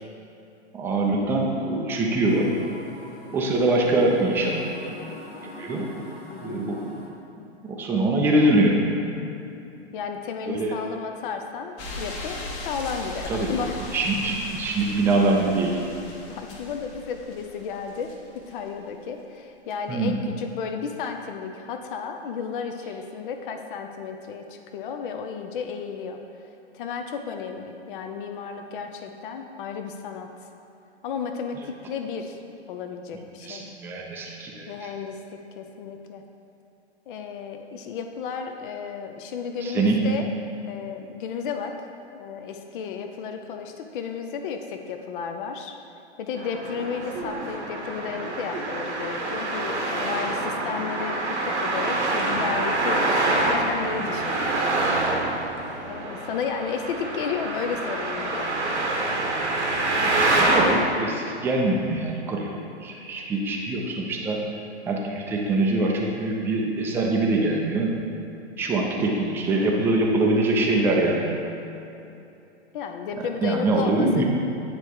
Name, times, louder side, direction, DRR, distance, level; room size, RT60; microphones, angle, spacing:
voice 1, 0.7-2.5 3.3-4.6 5.6-5.9 6.4-6.9 7.6-8.8 10.5-10.8 13.3-13.5 13.9-15.8 19.9-20.1 33.4-34.7 39.6-40.0 60.0-62.5 62.8-64.4 64.9-67.9 68.6-71.3 73.4-74.2, right 2 dB, 5° right, -1 dB, 0.4 m, -23 dB
sound 1, 2.2-7.1, left 1 dB, 80° left, 1.6 m, -43 dB
voice 2, 6.3-6.7 9.9-13.8 16.3-26.2 26.7-30.3 31.0-33.6 34.7-36.2 37.1-40.3 40.7-45.8 46.2-54.4 55.9-58.5 72.7-74.2, left 6 dB, 50° left, 5 dB, 0.6 m, -33 dB
Earth view from space, 11.8-18.7 19.7-19.8, left 2 dB, 35° left, 1.0 m, -38 dB
Traffic noise roadway noise, 46.4-60.8, right 2 dB, 85° right, 1.1 m, -26 dB
8.9 x 3.4 x 4.6 m, 2.8 s
figure-of-eight pair, 110°, 34 cm